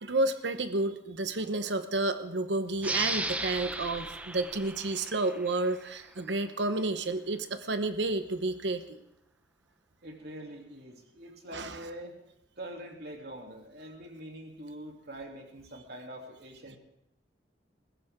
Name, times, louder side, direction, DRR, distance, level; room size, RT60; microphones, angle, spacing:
voice 1, 0.0-9.0 11.5-11.8, right 2 dB, 85° right, 9 dB, 1.0 m, -31 dB
sound 1, 2.8-6.1, right 2 dB, 10° right, 0.7 m, -36 dB
voice 2, 10.0-12.2 12.6-16.8, right 1 dB, 65° right, 1 dB, 2.8 m, -44 dB
21.0 x 15.5 x 3.7 m, 0.79 s
head